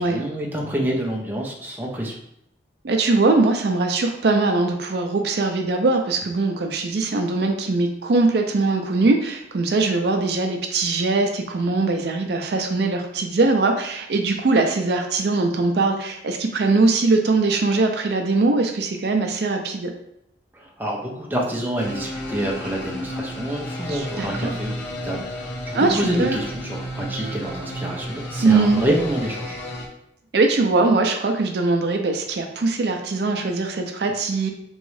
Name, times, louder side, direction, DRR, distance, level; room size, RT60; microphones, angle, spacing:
voice 1, 0.0-2.1 20.5-29.6, right 1 dB, 10° right, -2 dB, 0.5 m, -27 dB
voice 2, 2.8-19.9 23.9-24.5 25.7-26.4 28.4-28.8 30.3-34.5, right 3 dB, 60° right, 4 dB, 0.4 m, -21 dB
sound 1, 21.8-29.9, left 1 dB, 85° left, 0.9 m, -32 dB
3.6 x 3.1 x 3.1 m, 0.78 s
head